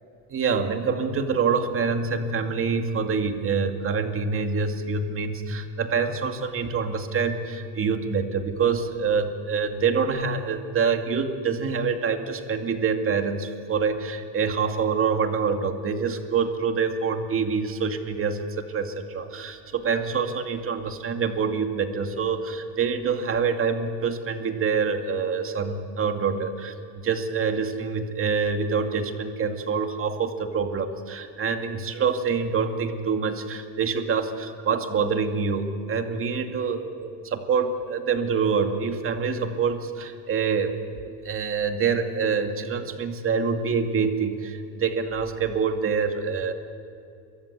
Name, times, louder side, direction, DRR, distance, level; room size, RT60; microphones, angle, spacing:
voice 1, 0.3-46.5, right 5 dB, 30° right, 6 dB, 2.3 m, -26 dB
29.0 x 24.0 x 8.3 m, 2.6 s
cardioid pair, 145°, 41 cm